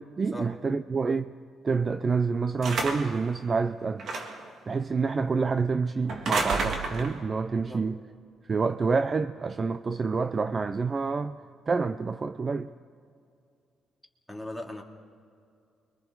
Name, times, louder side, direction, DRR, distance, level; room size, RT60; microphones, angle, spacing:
voice 1, 0.2-1.3 1.6-4.1 4.7-8.0 8.5-11.4 11.7-12.7, right 4 dB, 35° right, 0.5 m, -27 dB
sound 1, 2.6-3.2 4.0-4.5 6.1-7.2, right 3 dB, 60° right, 2.0 m, -30 dB
voice 2, 14.3-14.8, left 1 dB, ahead, 2.9 m, -38 dB
30.0 x 24.0 x 4.0 m
cardioid pair, 90°, 0 cm